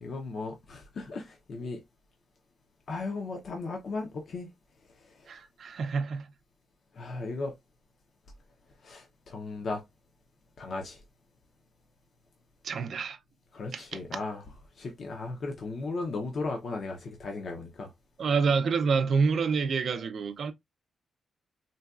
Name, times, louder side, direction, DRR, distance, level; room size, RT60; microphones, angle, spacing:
voice 1, 0.0-1.8 2.9-4.5 7.0-7.5 8.8-9.8 10.6-11.0 13.5-14.4 14.8-17.9, left 3 dB, 55° left, 0.6 m, -36 dB
voice 2, 5.3-6.3 12.6-13.2 13.7-14.0 18.2-20.5, right 5 dB, 55° right, 0.4 m, -27 dB
3.9 x 2.2 x 2.3 m
wide cardioid pair, 130°, 0 cm